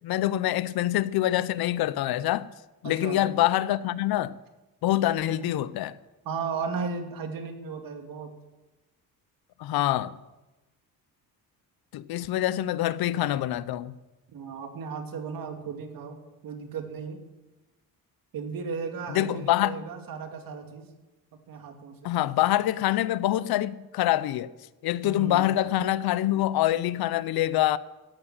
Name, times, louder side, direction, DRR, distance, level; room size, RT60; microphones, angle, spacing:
voice 1, 0.0-2.5 2.8-4.4 4.8-6.0 9.6-10.1 11.9-14.0 19.1-19.9 22.0-24.5 24.8-27.8, left 14 dB, 80° left, 0.7 m, -25 dB
voice 2, 2.8-3.2 5.3-5.4 6.2-8.3 14.3-16.2 16.4-17.2 18.3-20.9 21.5-22.1 25.0-25.5, right 5 dB, 65° right, 2.4 m, -35 dB
14.0 x 9.0 x 9.0 m
cardioid pair, 140°, 36 cm